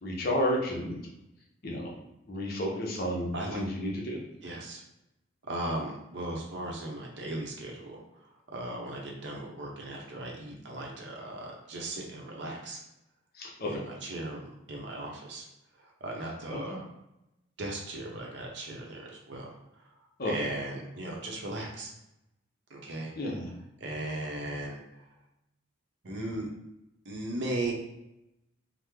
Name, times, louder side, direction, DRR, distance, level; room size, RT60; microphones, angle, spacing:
voice 1, 0.0-1.0 1.6-1.9 2.3-4.2 13.4-13.7 16.5-16.6 20.2-20.3 23.2-23.5, equal, 50° left, -1 dB, 0.6 m, -31 dB
voice 2, 3.3-3.6 4.4-4.8 5.5-12.8 13.6-15.4 15.7-16.9 17.6-19.6 20.2-21.9 22.7-23.1 23.8-25.0 26.0-26.5 27.0-27.7, right 1 dB, 60° right, -1 dB, 0.7 m, -37 dB
3.0 x 2.0 x 3.5 m, 0.88 s
head